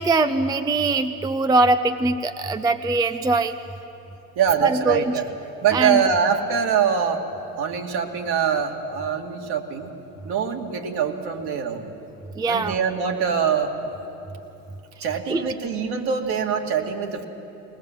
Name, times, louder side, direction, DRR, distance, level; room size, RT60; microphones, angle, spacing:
voice 1, 0.0-3.6 4.6-5.1 5.7-6.0 12.4-12.8 15.3-15.4, right 3 dB, 10° right, 10 dB, 0.4 m, -22 dB
voice 2, 4.4-5.3 5.6-7.2 7.6-9.9 10.2-11.9 12.5-13.8 15.0-17.3, right 7 dB, 55° right, 3 dB, 2.5 m, -23 dB
20.5 x 20.0 x 7.6 m, 2.9 s
hypercardioid pair, 95°, 47 cm